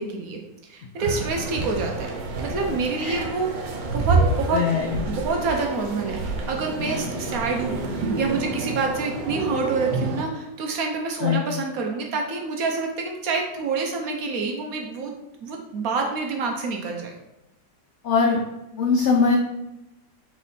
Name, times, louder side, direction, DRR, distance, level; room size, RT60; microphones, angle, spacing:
voice 1, 0.0-2.1 2.4-3.5 3.9-4.6 5.1-15.1 15.4-17.1, right 4 dB, 65° right, 2 dB, 0.9 m, -27 dB
sound 1, 1.0-10.2, right 3 dB, 90° right, 1.4 m, -28 dB
voice 2, 4.5-5.0 11.2-11.4 18.0-18.4 18.8-19.4, left 5 dB, 90° left, -1 dB, 0.6 m, -21 dB
4.1 x 3.6 x 3.5 m, 0.95 s
omnidirectional pair, 1.9 m